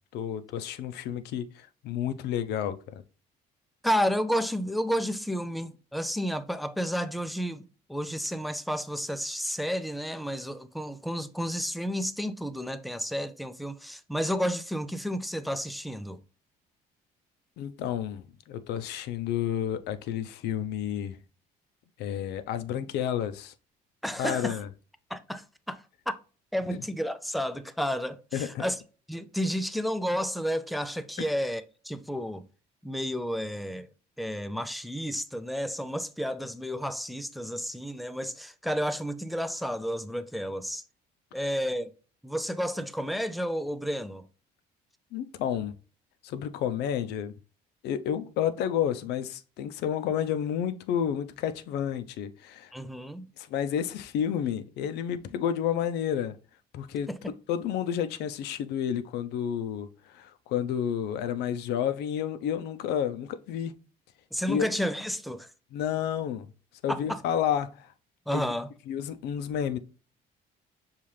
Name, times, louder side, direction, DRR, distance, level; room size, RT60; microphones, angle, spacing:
voice 1, 0.1-3.0 17.6-21.2 22.0-23.5 24.2-24.7 26.7-26.8 28.3-28.6 31.2-31.3 45.1-45.8 46.2-47.3 47.8-52.7 53.4-56.4 56.7-63.7 64.5-64.7 65.7-66.5 66.8-67.9 68.3-68.4 68.9-69.8, left 9 dB, 80° left, 0.5 m, -30 dB
voice 2, 3.8-16.2 24.0-24.6 25.1-26.1 26.5-28.8 29.1-32.4 32.8-33.9 34.2-40.8 41.3-41.9 42.2-44.2 52.7-53.2 57.1-57.3 64.3-65.5 66.9-67.2 68.3-68.7, equal, ahead, 0.3 m, -31 dB
5.6 x 2.4 x 3.2 m
cardioid pair, 110°, 17 cm